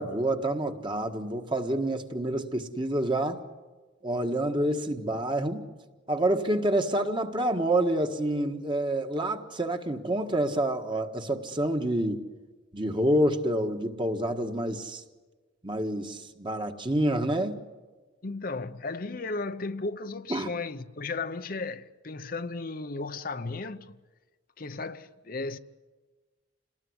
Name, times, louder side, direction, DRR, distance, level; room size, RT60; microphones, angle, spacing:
voice 1, 0.0-3.4 4.0-5.7 6.1-12.2 12.7-15.0 15.6-17.6 20.3-20.5, right 1 dB, 25° right, 1.5 m, -28 dB
voice 2, 18.2-24.0 24.6-25.6, left 3 dB, 45° left, 0.8 m, -35 dB
28.0 x 19.5 x 9.6 m
head